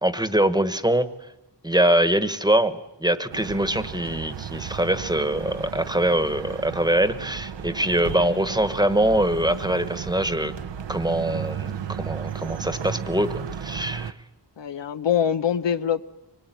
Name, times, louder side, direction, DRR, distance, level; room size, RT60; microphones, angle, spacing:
voice 1, 0.0-1.1 1.6-10.5 10.9-14.1, right 1 dB, 10° right, 12 dB, 1.2 m, -23 dB
sound 1, 3.3-14.1, right 8 dB, 80° right, 0.9 m, -34 dB
voice 2, 14.6-16.1, left 8 dB, 80° left, 11 dB, 0.9 m, -24 dB
24.5 x 21.0 x 9.2 m, 0.92 s
wide cardioid pair, 125°, 43 cm